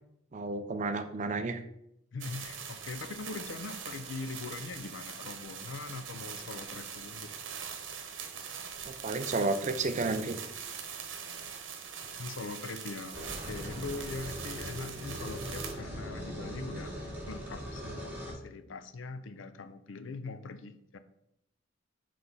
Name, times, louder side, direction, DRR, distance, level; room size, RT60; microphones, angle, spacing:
voice 1, 0.3-1.6 8.8-10.4, right 3 dB, 40° right, 9 dB, 0.5 m, -31 dB
voice 2, 2.1-7.3 12.1-21.0, left 3 dB, 75° left, 11 dB, 0.5 m, -42 dB
sound 1, 2.2-15.7, right 7 dB, 70° right, 0.9 m, -42 dB
sound 2, 13.1-18.3, equal, 10° right, 1.7 m, -40 dB
5.9 x 3.3 x 5.4 m, 0.78 s
head